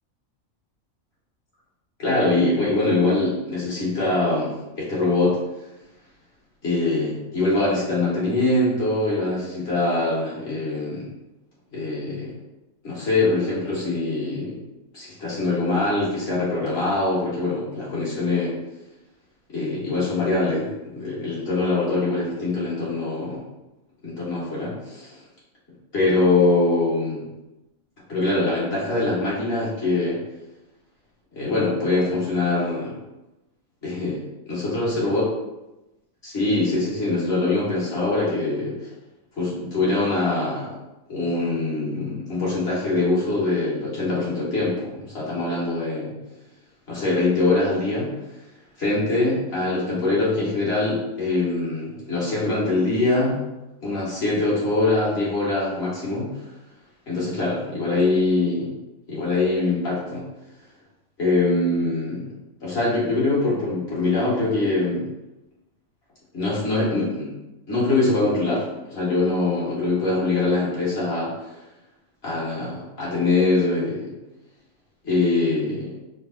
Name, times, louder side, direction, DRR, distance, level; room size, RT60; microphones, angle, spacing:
voice 1, 2.0-5.4 6.6-11.1 11.7-12.3 12.8-14.6 14.9-18.5 19.5-20.7 20.9-23.4 24.0-25.2 25.9-27.2 28.1-30.2 31.3-32.9 33.8-35.2 36.2-38.9 39.4-40.7 41.1-46.1 46.9-48.1 48.8-53.4 53.8-56.3 57.1-58.7 59.1-60.2 61.2-62.3 62.6-65.1 66.3-67.3 67.7-71.5 72.2-74.1 75.0-76.0, left 2 dB, 50° left, -7 dB, 1.9 m, -23 dB
5.2 x 2.0 x 4.2 m, 0.98 s
omnidirectional pair, 1.4 m